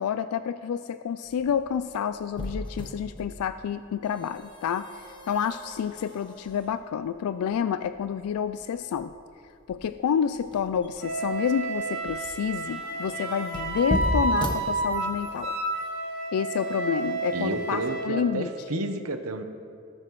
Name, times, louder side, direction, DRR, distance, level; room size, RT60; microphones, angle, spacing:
voice 1, 0.0-9.1 9.7-15.6 16.3-18.8, left 8 dB, 85° left, 12 dB, 0.3 m, -29 dB
sound 1, 1.2-15.4, equal, 20° left, 1.0 m, -37 dB
Wind instrument woodwind instrument, 11.0-18.1, right 3 dB, 65° right, 2.9 m, -31 dB
voice 2, 17.3-19.4, right 2 dB, 80° right, 7 dB, 0.9 m, -31 dB
19.0 x 8.9 x 3.1 m, 2.4 s
head